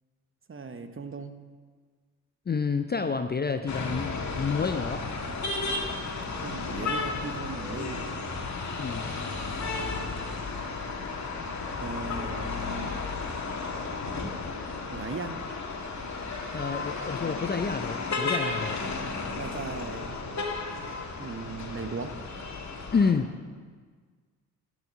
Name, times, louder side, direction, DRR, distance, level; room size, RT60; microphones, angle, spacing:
voice 1, 0.5-1.3 6.4-8.2 11.8-13.0 14.9-15.4 19.3-20.1 21.2-22.1, right 4 dB, 25° right, 9 dB, 1.2 m, -37 dB
voice 2, 2.5-5.0 8.8-9.1 16.5-18.8 22.9-23.3, left 5 dB, 20° left, 9 dB, 0.6 m, -29 dB
sound 1, 3.7-23.1, left 3 dB, 35° left, 2.2 m, -33 dB
12.0 x 9.6 x 5.8 m, 1.5 s
hypercardioid pair, 50°, 45 cm